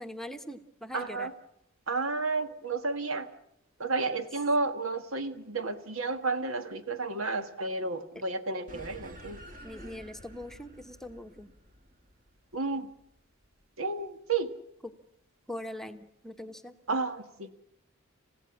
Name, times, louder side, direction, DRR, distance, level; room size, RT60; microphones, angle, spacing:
voice 1, 0.0-1.3 9.6-11.5 15.5-16.7, left 1 dB, ahead, 7 dB, 1.0 m, -42 dB
voice 2, 0.9-1.3 1.9-3.3 3.8-9.4 12.5-12.9 13.8-14.5 16.9-17.5, right 3 dB, 75° right, 9 dB, 1.6 m, -31 dB
sound 1, 8.7-13.4, equal, 40° right, 2.1 m, -50 dB
29.5 x 16.0 x 7.2 m, 0.75 s
head